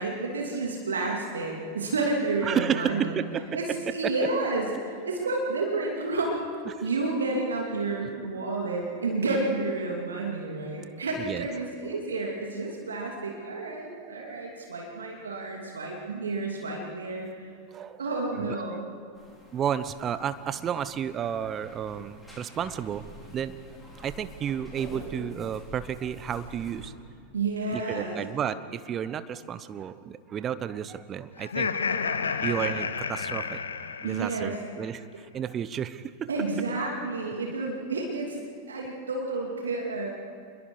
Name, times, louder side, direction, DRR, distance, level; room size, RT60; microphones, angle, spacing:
voice 1, 0.0-3.2 3.5-4.7 5.0-6.4 6.8-17.3 18.0-18.9 27.3-28.2 34.0-34.6 36.3-38.4 38.7-40.1, right 3 dB, 70° right, 0 dB, 2.8 m, -30 dB
voice 2, 2.4-3.8 4.0-4.1 6.7-6.8 11.2-11.5 14.3-14.4 15.9-16.0 17.7-18.1 18.4-18.8 19.5-23.0 23.3-23.6 24.0-26.9 27.7-31.7 32.2-33.6 34.0-36.3, right 8 dB, 25° right, 14 dB, 0.9 m, -32 dB
sound 1, 19.1-26.9, equal, ahead, 5.2 m, -47 dB
Laughter, 31.4-34.6, left 5 dB, 70° left, 1.0 m, -31 dB
27.0 x 22.0 x 4.9 m, 2.2 s
figure-of-eight pair, 90°, 0 cm